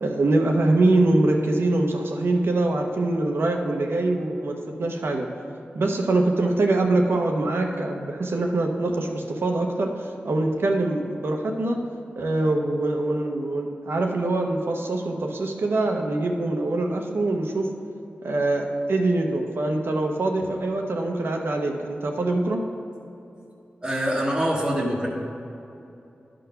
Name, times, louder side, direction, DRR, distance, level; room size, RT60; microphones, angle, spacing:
voice 1, 0.0-5.3 5.7-11.8 12.2-17.7 18.2-22.6, right 2 dB, 75° right, 2 dB, 0.8 m, -24 dB
voice 2, 23.8-25.1, equal, 15° right, -5 dB, 1.2 m, -24 dB
11.0 x 3.8 x 5.7 m, 2.8 s
cardioid pair, 55°, 4 cm